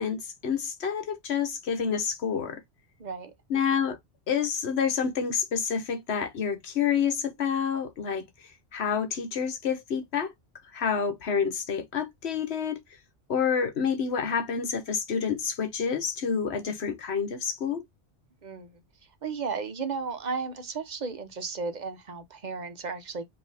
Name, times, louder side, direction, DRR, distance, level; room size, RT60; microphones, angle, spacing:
voice 1, 0.0-2.6 3.5-4.0 4.3-10.3 10.7-12.8 13.3-17.8, left 7 dB, 70° left, 1.2 m, -28 dB
voice 2, 3.0-3.3 18.4-18.8 19.2-23.3, right 5 dB, 45° right, 0.8 m, -34 dB
5.2 x 2.8 x 3.4 m
omnidirectional pair, 1.1 m